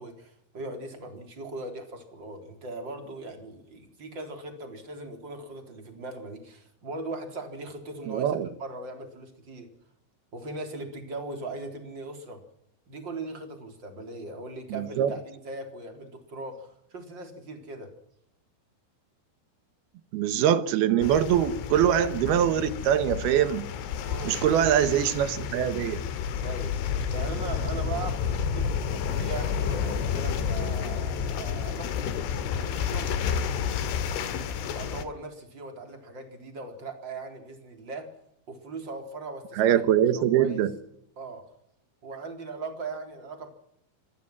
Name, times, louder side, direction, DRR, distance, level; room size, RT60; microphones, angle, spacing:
voice 1, 0.0-9.7 10.3-12.4 12.9-17.9 24.1-24.4 26.2-31.9 32.5-33.3 34.8-38.2 38.5-39.8 40.2-40.7 41.2-41.5 42.0-43.5, right 2 dB, 25° right, 5 dB, 3.9 m, -39 dB
voice 2, 8.1-8.5 14.7-15.1 20.1-23.7 24.2-26.0 39.6-40.7, right 10 dB, 70° right, 13 dB, 2.7 m, -23 dB
sound 1, 21.0-35.0, left 7 dB, 80° left, 4.3 m, -30 dB
25.5 x 18.5 x 6.0 m, 0.75 s
omnidirectional pair, 5.5 m